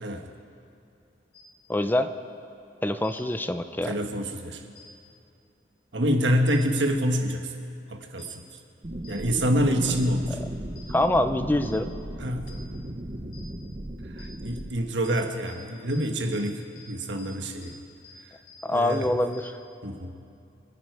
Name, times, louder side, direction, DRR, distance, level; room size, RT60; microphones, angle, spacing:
sound 1, 1.3-1.4 3.0-3.1 4.7-4.8 6.5-6.6 8.2-8.3 9.0-9.1 9.9-10.0 10.7-10.8 11.6-11.7 12.5-12.6 13.3-13.4 14.2-14.3 15.0-15.1 15.5-15.6 15.9-16.0 16.3-16.4 16.7-16.8 17.2-17.3 17.6-17.7 18.0-18.1 18.5-18.6 18.9-19.0 19.3-19.4, left 8 dB, 75° left, 3.0 m, -49 dB
voice 1, 1.7-2.1 2.8-4.0 10.9-11.9 18.6-19.6, left 1 dB, 10° left, 10 dB, 0.5 m, -25 dB
voice 2, 3.8-4.7 5.9-7.5 7.9-8.4 9.1-10.4 12.2-12.6 14.1-17.7 18.7-19.1 19.8-20.1, equal, 90° right, 4 dB, 1.5 m, -27 dB
sound 2, 8.8-14.7, right 1 dB, 35° right, 0.8 m, -36 dB
27.5 x 9.9 x 4.7 m, 2.7 s
head